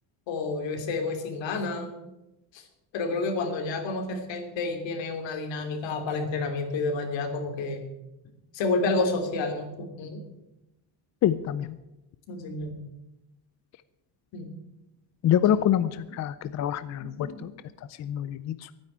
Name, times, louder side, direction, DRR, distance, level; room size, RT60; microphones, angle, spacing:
voice 1, 0.3-1.9 2.5-2.6 2.9-7.8 8.5-10.2 12.3-12.8 14.3-14.5 17.2-17.3, left 3 dB, 80° left, 4 dB, 3.0 m, -30 dB
voice 2, 11.2-11.8 15.2-17.5 18.0-18.7, left 10 dB, 40° left, 14 dB, 0.4 m, -26 dB
12.0 x 9.6 x 9.1 m, 0.95 s
cardioid pair, 180°, 44 cm